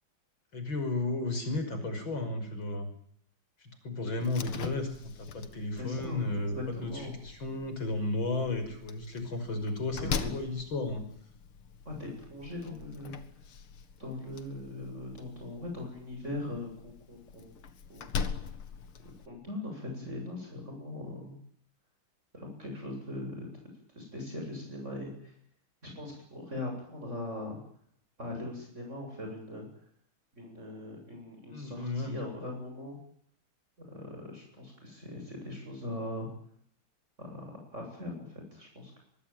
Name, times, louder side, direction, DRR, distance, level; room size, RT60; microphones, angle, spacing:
voice 1, 0.5-2.9 3.6-11.0 31.5-32.2, left 2 dB, 65° left, 8 dB, 6.5 m, -34 dB
Slam, 4.2-19.3, left 6 dB, 80° left, 2.6 m, -42 dB
voice 2, 5.7-6.2 6.5-7.2 9.9-10.3 11.8-13.1 14.0-17.5 17.9-18.1 19.0-21.4 22.3-23.6 23.9-25.3 25.8-27.6 28.2-29.7 30.3-33.0 33.8-36.3 37.2-39.0, left 1 dB, 30° right, 2 dB, 8.5 m, -40 dB
23.0 x 23.0 x 9.3 m, 0.65 s
omnidirectional pair, 2.3 m